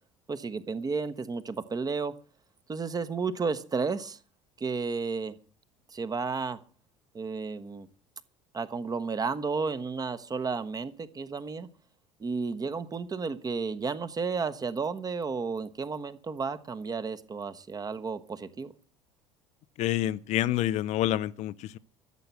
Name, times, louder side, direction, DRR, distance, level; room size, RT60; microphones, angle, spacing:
voice 1, 0.3-2.1 2.7-4.2 4.6-5.4 5.9-6.6 7.1-7.9 8.5-11.7 12.2-18.7, right 4 dB, 25° right, 1.2 m, -32 dB
voice 2, 19.8-21.8, left 13 dB, 50° left, 0.6 m, -28 dB
13.5 x 7.9 x 8.5 m
figure-of-eight pair, 65°, 16 cm